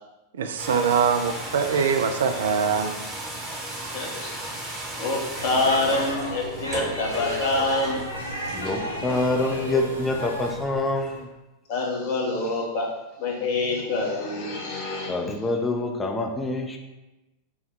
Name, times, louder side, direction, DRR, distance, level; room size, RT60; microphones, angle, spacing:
voice 1, 0.4-2.9, right 6 dB, 60° right, 7 dB, 0.3 m, -23 dB
sound 1, 0.6-11.2, right 1 dB, 20° right, 1.0 m, -36 dB
voice 2, 3.9-4.3 5.0-8.0 11.7-12.9 13.2-15.2, left 2 dB, 50° left, -1 dB, 0.9 m, -26 dB
Speech / Shout / Subway metro underground, 5.3-10.6, left 1 dB, 85° left, 0.6 m, -33 dB
voice 3, 8.5-11.3 15.1-16.8, left 2 dB, 15° left, 2 dB, 0.5 m, -26 dB
3.5 x 2.2 x 4.4 m, 1.0 s
figure-of-eight pair, 90°, 0 cm